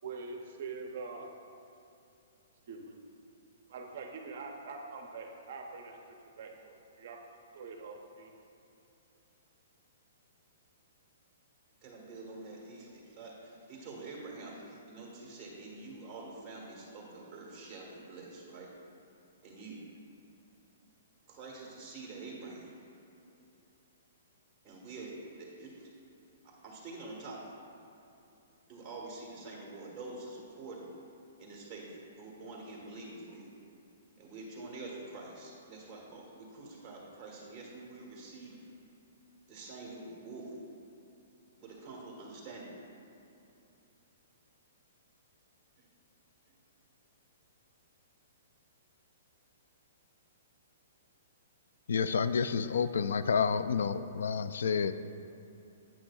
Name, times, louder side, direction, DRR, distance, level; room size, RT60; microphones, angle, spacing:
voice 1, 0.0-1.3 2.7-2.9 3.7-6.0 6.4-7.2 7.5-8.3, right 4 dB, 45° right, 2 dB, 0.6 m, -44 dB
voice 2, 11.8-18.8 19.4-19.8 21.3-22.8 24.6-25.9 26.4-27.6 28.7-31.0 31.4-33.5 34.2-38.7 39.5-40.6 41.6-42.8 45.8-45.9 46.5-46.6, right 2 dB, 15° right, -3 dB, 1.3 m, -46 dB
voice 3, 51.9-54.9, left 6 dB, 80° left, 12 dB, 0.3 m, -29 dB
8.8 x 8.6 x 2.3 m, 2.8 s
hypercardioid pair, 175°, 0 cm